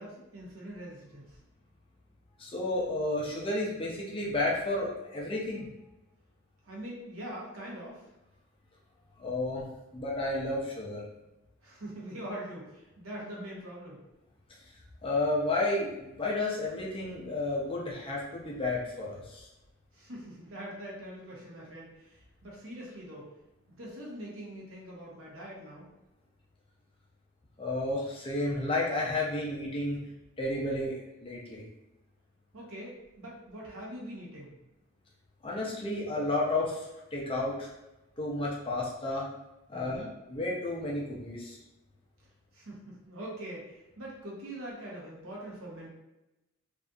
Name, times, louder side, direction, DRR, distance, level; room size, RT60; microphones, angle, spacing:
voice 1, 0.0-1.4 6.6-8.1 11.6-14.0 19.9-23.3 23.7-25.9 32.5-34.5 39.7-40.1 42.5-45.9, right 1 dB, 85° right, -4 dB, 0.8 m, -43 dB
voice 2, 2.4-5.7 9.2-9.6 9.9-11.0 15.0-19.5 27.6-30.0 30.4-30.9 31.2-31.6 35.4-37.7 38.2-39.3 39.7-41.6, left 2 dB, 25° left, -4 dB, 0.5 m, -32 dB
2.6 x 2.4 x 2.3 m, 0.94 s
head